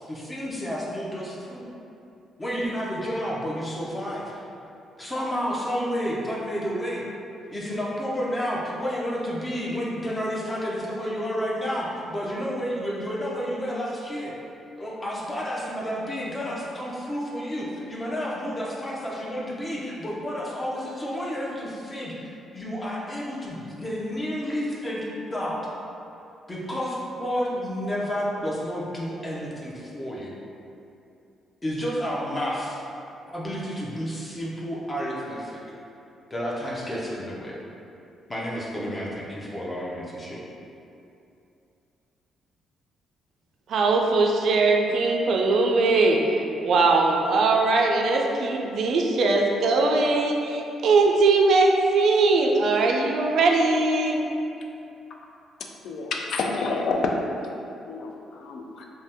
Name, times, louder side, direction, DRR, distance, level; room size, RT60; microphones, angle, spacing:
voice 1, 0.0-1.6 2.4-4.3 5.0-7.0 7.5-14.3 14.8-25.6 26.5-30.3 31.6-32.8 33.3-35.6 36.3-37.6 38.3-40.4, equal, 20° left, -4 dB, 0.6 m, -30 dB
voice 2, 43.7-46.2 46.6-54.2, right 3 dB, 65° right, 1 dB, 0.3 m, -20 dB
voice 3, 55.8-57.1 57.9-58.9, left 4 dB, 65° left, 1 dB, 0.3 m, -28 dB
2.7 x 2.2 x 3.4 m, 2.7 s
cardioid pair, 90°, 0 cm